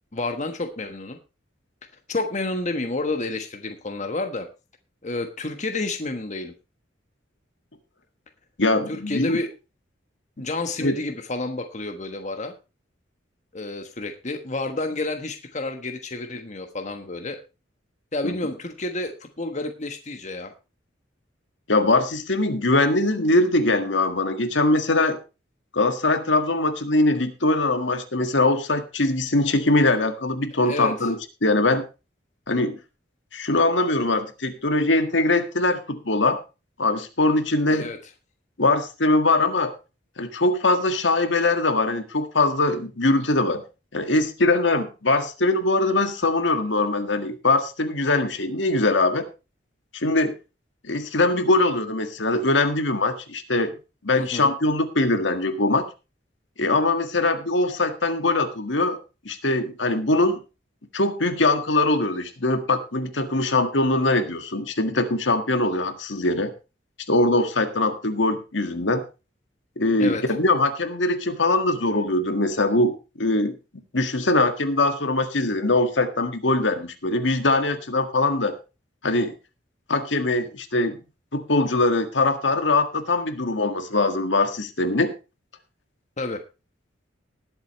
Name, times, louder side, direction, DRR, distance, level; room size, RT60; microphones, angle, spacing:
voice 1, 0.1-1.2 2.1-4.5 5.0-6.5 8.9-9.5 10.4-12.5 13.5-17.4 18.1-20.5 30.6-31.1 37.7-38.0 54.2-54.5 70.0-70.3 86.2-86.4, left 2 dB, 40° left, 6 dB, 1.3 m, -30 dB
voice 2, 8.6-9.4 10.8-11.0 18.2-18.4 21.7-25.2 25.7-31.8 32.5-32.8 33.3-36.4 36.8-37.9 38.6-39.7 40.2-43.6 43.9-49.3 49.9-50.3 50.9-53.7 54.0-55.9 56.6-59.0 59.3-60.4 60.9-66.5 67.1-69.0 69.8-73.6 73.9-78.6 79.0-79.3 79.9-81.0 81.3-85.1, left 2 dB, 70° left, 8 dB, 1.7 m, -22 dB
19.5 x 7.9 x 3.1 m, 0.29 s
head